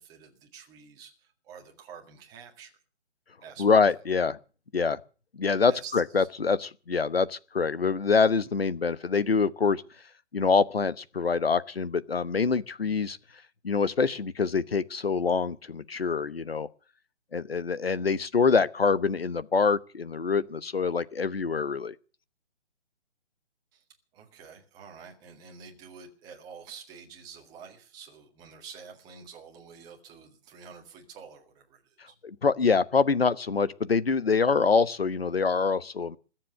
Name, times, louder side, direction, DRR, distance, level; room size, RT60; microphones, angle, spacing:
voice 1, 0.0-2.7 3.4-3.7 5.7-6.3 23.7-23.8 24.1-32.2, right 6 dB, 10° right, 1.9 m, -48 dB
voice 2, 3.6-4.4 4.7-5.0 5.3-9.8 10.3-13.2 13.6-16.7 17.3-21.9 32.2-36.2, left 5 dB, 60° left, 1.1 m, -25 dB
20.5 x 7.7 x 7.9 m
figure-of-eight pair, 145°, 34 cm